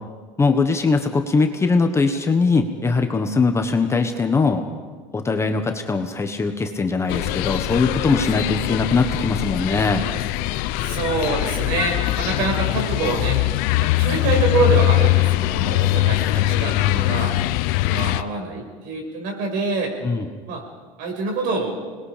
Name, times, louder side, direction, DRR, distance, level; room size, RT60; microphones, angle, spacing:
voice 1, 0.4-4.6 5.1-10.1 18.1-18.2 20.0-20.2, left 4 dB, 15° left, 5 dB, 1.4 m, -21 dB
sound 1, 7.1-18.2, left 16 dB, 70° left, 0.8 m, -22 dB
voice 2, 10.8-13.4 13.8-17.3 17.9-19.9 20.5-20.6 21.0-21.8, right 3 dB, 65° right, 2 dB, 6.2 m, -25 dB
26.5 x 20.5 x 5.1 m, 1.5 s
cardioid pair, 130°, 16 cm